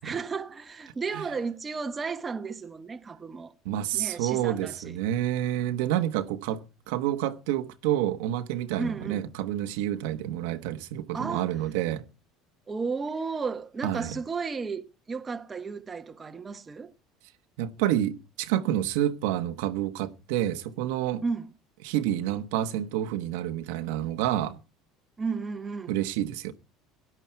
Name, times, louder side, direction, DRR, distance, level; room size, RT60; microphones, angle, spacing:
voice 1, 0.0-3.5 3.9-5.0 8.8-9.2 11.1-11.5 12.7-16.9 21.2-21.5 25.2-26.0, right 4 dB, 20° right, 1.0 m, -33 dB
voice 2, 3.6-6.6 6.9-12.0 13.8-14.2 17.6-21.2 21.8-24.6 25.9-26.5, right 12 dB, 85° right, 1.2 m, -28 dB
17.0 x 11.0 x 4.5 m
cardioid pair, 140°, 0 cm